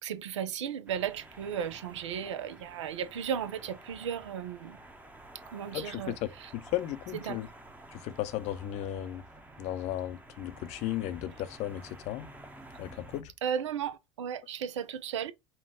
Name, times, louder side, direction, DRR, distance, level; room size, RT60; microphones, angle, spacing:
voice 1, 0.0-4.8 5.5-6.5 7.2-7.4 13.4-15.3, right 8 dB, 75° right, 0.6 m, -35 dB
sound 1, 0.9-13.2, right 1 dB, 10° right, 0.9 m, -51 dB
voice 2, 5.7-7.5 7.9-9.2 9.6-12.3 12.8-13.3, left 13 dB, 45° left, 0.6 m, -35 dB
5.4 x 2.3 x 3.7 m
hypercardioid pair, 80°, 16 cm